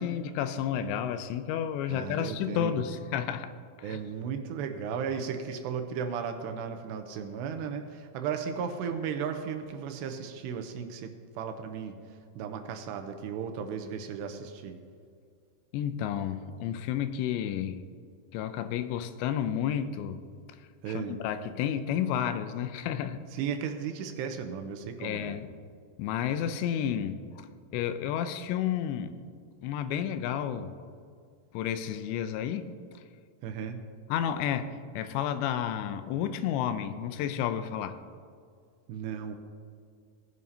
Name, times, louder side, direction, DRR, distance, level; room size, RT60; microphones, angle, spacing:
voice 1, 0.0-3.5 3.8-4.0 15.7-17.8 18.3-20.2 20.9-23.2 25.0-25.5 26.0-27.5 27.7-29.1 29.6-30.7 31.5-33.0 34.1-38.0, left 9 dB, 85° left, 11 dB, 2.8 m, -31 dB
voice 2, 1.9-2.8 3.8-11.9 12.4-14.8 20.8-21.2 23.3-25.4 33.4-33.8 38.9-39.4, right 7 dB, 85° right, 6 dB, 2.8 m, -35 dB
19.0 x 11.0 x 2.8 m, 2.2 s
omnidirectional pair, 5.0 m